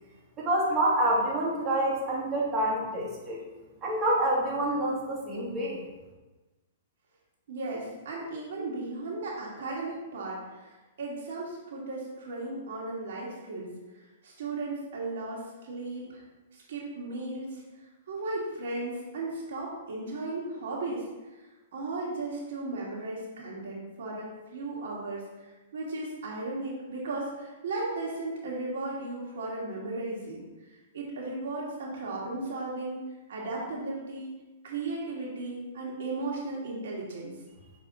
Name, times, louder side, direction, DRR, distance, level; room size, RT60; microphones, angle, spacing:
voice 1, 0.4-3.4 3.8-5.8, right 1 dB, 25° right, -5 dB, 2.1 m, -27 dB
voice 2, 7.5-13.7 14.2-16.2 16.5-17.6 18.1-21.1 21.3-21.5 21.7-33.0 33.3-34.3 34.6-37.3, right 2 dB, 65° right, -4 dB, 1.8 m, -36 dB
6.3 x 4.7 x 3.7 m, 1.2 s
hypercardioid pair, 115°, 0 cm